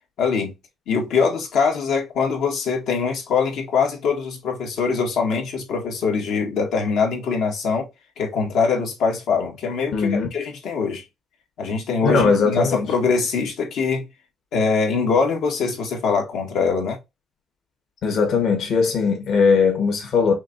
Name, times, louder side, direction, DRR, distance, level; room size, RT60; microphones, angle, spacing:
voice 1, 0.2-0.5 0.9-7.9 8.2-11.0 11.6-14.0 14.5-17.0, left 5 dB, 80° left, 2.0 m, -23 dB
voice 2, 9.9-10.3 12.0-12.8 18.0-20.3, left 5 dB, 65° left, 1.7 m, -19 dB
5.7 x 3.3 x 2.7 m
cardioid pair, 160°, 0 cm